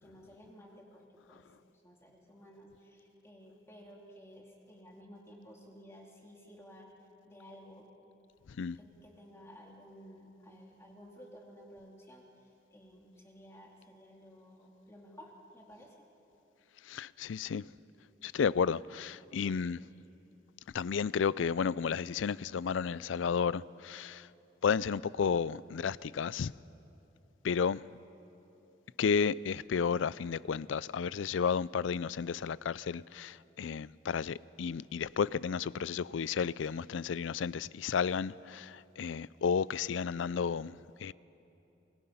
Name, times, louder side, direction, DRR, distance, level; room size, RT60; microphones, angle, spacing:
voice 1, 0.0-1.5 1.8-6.9 7.2-7.9 8.7-16.1, equal, 15° left, 2.4 m, -54 dB
voice 2, 16.9-17.6 18.2-19.8 20.7-24.3 24.6-26.5 27.4-27.8 29.0-41.1, left 6 dB, 90° left, 0.4 m, -32 dB
29.0 x 22.5 x 5.6 m
head